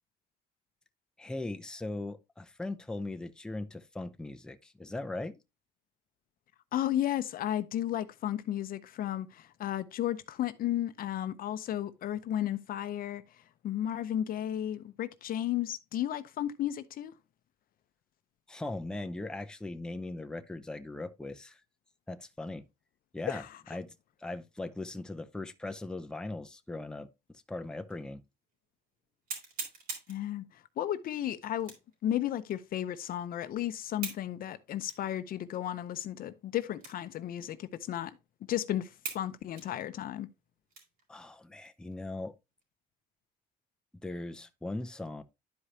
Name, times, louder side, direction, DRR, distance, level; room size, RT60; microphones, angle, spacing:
voice 1, 1.2-5.4 18.5-21.6 22.1-22.6 23.1-23.4 23.7-28.2 41.1-42.3 44.0-45.2, left 2 dB, 5° left, 0.6 m, -39 dB
voice 2, 6.7-13.2 13.6-17.1 23.3-23.5 30.1-30.4 30.8-31.7 32.0-38.1 38.5-38.9 39.1-40.3, left 12 dB, 60° left, 0.7 m, -33 dB
sound 1, 27.9-28.0 28.5-28.6 29.3-30.2 31.6-32.0 32.5-32.6 34.0-34.3 34.9-35.0 35.7-35.8 36.8-37.1 37.4-37.5 38.2-38.3 39.0-39.3 39.6-41.0 41.5-41.7 42.2-42.6, right 4 dB, 60° right, 3.6 m, -42 dB
11.5 x 4.9 x 2.8 m
cardioid pair, 110°, 17 cm